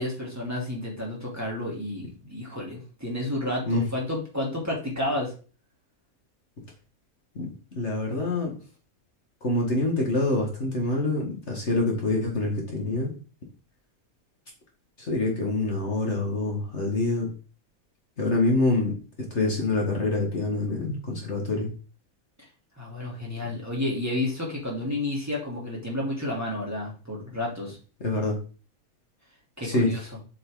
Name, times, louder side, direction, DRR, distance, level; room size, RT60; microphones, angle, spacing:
voice 1, 0.0-5.3 22.8-27.8 29.6-30.0, left 1 dB, 10° right, -4 dB, 3.1 m, -31 dB
voice 2, 7.4-8.5 9.4-13.1 15.0-17.3 18.2-18.9 19.3-21.7 28.0-28.4 29.6-29.9, left 2 dB, 50° left, 0 dB, 2.1 m, -26 dB
7.4 x 6.2 x 3.8 m, 0.37 s
omnidirectional pair, 1.5 m